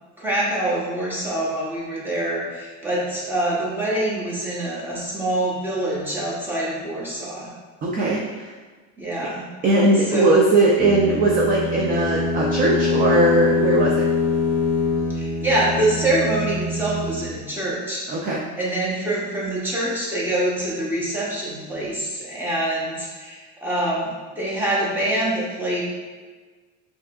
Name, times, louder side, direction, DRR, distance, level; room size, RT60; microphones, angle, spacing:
voice 1, 0.2-7.5 9.0-9.5 10.0-10.3 15.1-18.0 18.6-24.1 24.3-25.8, right 1 dB, 5° right, -6 dB, 0.9 m, -25 dB
voice 2, 7.8-8.5 9.6-14.0 18.1-18.4, right 2 dB, 25° right, -3 dB, 0.4 m, -19 dB
sound 1, 10.8-17.3, left 3 dB, 25° left, 0.7 m, -24 dB
5.6 x 2.8 x 2.4 m, 1.4 s
cardioid pair, 145°, 38 cm